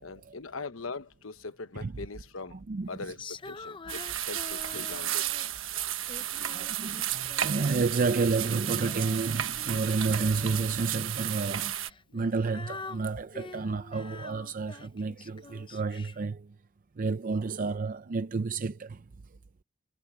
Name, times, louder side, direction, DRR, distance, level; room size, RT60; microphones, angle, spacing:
voice 1, 0.0-2.6 2.9-5.5 6.3-6.7 12.1-12.2, left 3 dB, 85° left, 1.0 m, -42 dB
voice 2, 2.5-2.9 6.5-11.8 12.1-16.5 17.0-19.0, right 4 dB, 45° right, 0.5 m, -30 dB
Female singing, 3.2-5.6 6.1-7.8 8.1-10.9 11.7-16.3, left 3 dB, 25° left, 0.6 m, -46 dB
sound 1, 3.9-11.9, right 12 dB, 75° right, 1.3 m, -33 dB
head